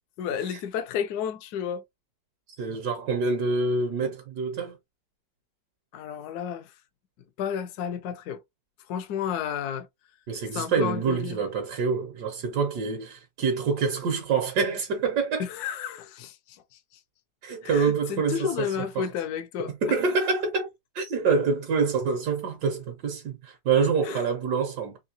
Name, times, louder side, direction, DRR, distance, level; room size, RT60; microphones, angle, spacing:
voice 1, 0.2-1.8 5.9-6.7 7.4-8.4 8.9-9.9 10.5-11.4 15.4-16.8 17.6-19.7 24.0-24.2, left 8 dB, 70° left, 1.1 m, -32 dB
voice 2, 2.6-4.8 10.3-15.4 17.4-18.7 19.0-19.1 19.6-20.7 20.9-25.0, right 5 dB, 70° right, 1.2 m, -26 dB
3.7 x 2.6 x 2.6 m
omnidirectional pair, 1.9 m